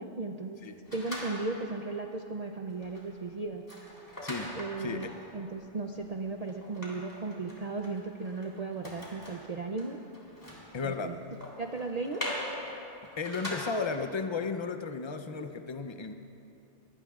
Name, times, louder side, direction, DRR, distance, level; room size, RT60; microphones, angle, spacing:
voice 1, 0.0-0.6 0.9-3.6 4.5-10.0 10.8-11.2 11.6-12.2, right 3 dB, 45° right, 3 dB, 0.5 m, -36 dB
sound 1, 0.9-1.8 2.2-2.4 2.7-14.0, left 1 dB, 15° left, 3.2 m, -43 dB
voice 2, 4.2-4.5 4.8-5.1 10.7-11.2 13.2-16.1, left 4 dB, 30° left, 7 dB, 0.5 m, -34 dB
24.5 x 19.0 x 2.4 m, 2.9 s
omnidirectional pair, 1.2 m